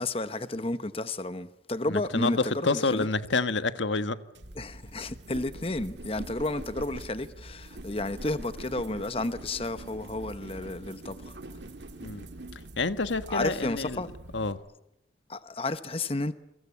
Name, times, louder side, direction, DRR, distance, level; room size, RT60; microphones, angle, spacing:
voice 1, 0.0-3.1 4.6-11.4 13.3-14.1 15.3-16.3, left 2 dB, 30° left, 1.0 m, -32 dB
voice 2, 1.9-4.2 12.0-12.3 12.8-14.0 14.3-14.6, left 3 dB, 80° left, 1.3 m, -28 dB
sound 1, 4.3-14.5, right 1 dB, 70° right, 1.9 m, -44 dB
29.0 x 24.0 x 8.5 m
head